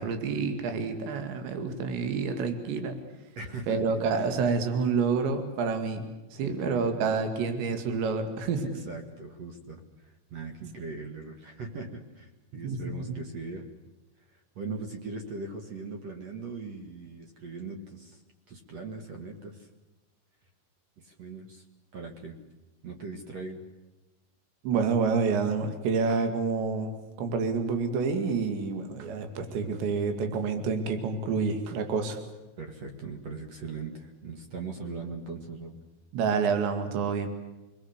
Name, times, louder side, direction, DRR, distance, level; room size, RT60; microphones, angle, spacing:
voice 1, 0.0-3.0 3.7-8.8 12.6-13.2 24.6-32.2 36.1-37.3, right 5 dB, 65° right, 7 dB, 4.3 m, -28 dB
voice 2, 3.4-4.5 6.4-7.0 8.9-13.7 14.6-18.2 18.5-19.7 21.0-21.6 21.9-22.4 22.8-23.6 32.6-35.8, right 4 dB, 50° right, 4 dB, 2.2 m, -40 dB
27.0 x 20.5 x 8.1 m, 1.1 s
omnidirectional pair, 5.7 m